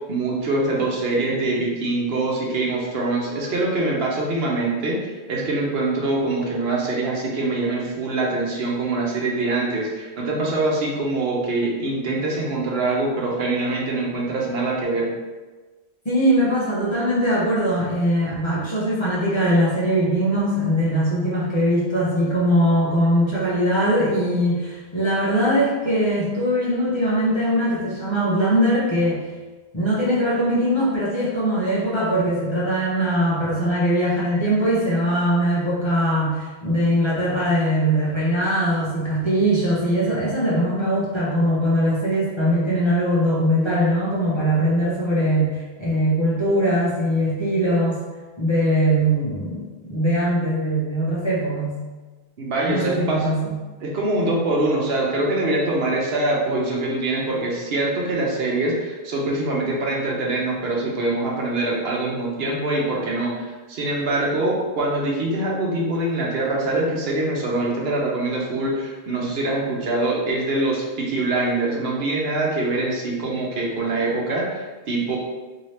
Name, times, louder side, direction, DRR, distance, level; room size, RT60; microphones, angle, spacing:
voice 1, 0.1-15.1 52.4-53.3 53.8-75.2, right 2 dB, 70° right, -2 dB, 0.9 m, -24 dB
voice 2, 16.0-29.2 29.7-48.0 48.4-51.8 52.7-53.6, equal, 30° left, -8 dB, 0.6 m, -21 dB
2.8 x 2.7 x 3.1 m, 1.3 s
omnidirectional pair, 1.1 m